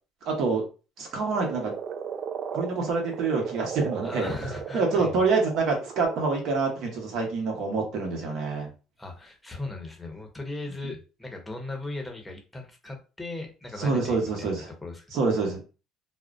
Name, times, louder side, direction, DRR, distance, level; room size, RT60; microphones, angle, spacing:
voice 1, 0.2-0.6 1.0-1.7 2.5-4.3 4.7-8.7 13.8-14.7 15.1-15.6, right 4 dB, 65° right, 1 dB, 0.9 m, -26 dB
Frog, 1.3-6.4, right 7 dB, 50° right, 0.3 m, -36 dB
voice 2, 4.0-5.2 9.0-15.1, left 2 dB, 10° left, 2 dB, 0.7 m, -38 dB
2.4 x 2.1 x 2.4 m, 0.33 s
supercardioid pair, 85°, 0 cm